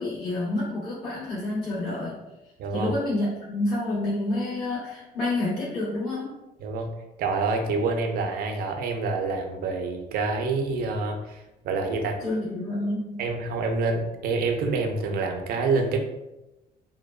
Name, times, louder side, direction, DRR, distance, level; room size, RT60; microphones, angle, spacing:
voice 1, 0.0-2.2 2.7-6.3 12.2-13.2, left 2 dB, 70° left, -11 dB, 1.4 m, -28 dB
voice 2, 2.6-2.9 6.6-6.9 7.2-12.2 13.2-16.0, right 3 dB, 65° right, 3 dB, 0.4 m, -27 dB
2.6 x 2.2 x 2.2 m, 0.97 s
cardioid pair, 110°, 17 cm